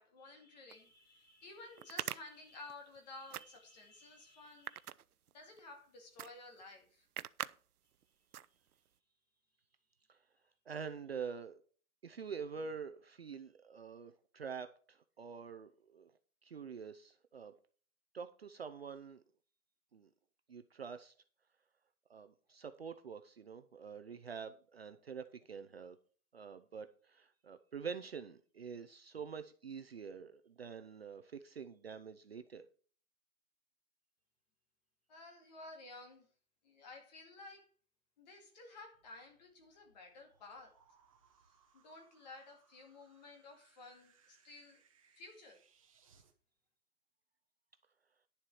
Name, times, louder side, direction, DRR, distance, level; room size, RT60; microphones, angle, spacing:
voice 1, 0.0-4.9 5.3-7.1 35.1-36.3 36.6-37.7 38.2-40.7 41.7-44.8 45.2-45.6, left 2 dB, 30° left, 3 dB, 2.4 m, -54 dB
sound 1, 0.7-0.8 1.8-3.0 3.3-3.8 4.4-5.6 6.2-6.3 6.6-6.7 7.2-7.5 7.9-8.0 8.3-8.9, right 10 dB, 80° right, 0.7 m, -43 dB
voice 2, 10.7-11.6 12.0-16.1 16.4-17.5 18.1-19.2 19.9-20.1 20.5-21.1 22.1-26.0 26.3-32.6, right 6 dB, 45° right, 9 dB, 0.7 m, -46 dB
sound 2, 38.9-46.3, right 6 dB, 25° right, 1.0 m, -71 dB
11.0 x 7.3 x 4.9 m, 0.42 s
hypercardioid pair, 170°, 45 cm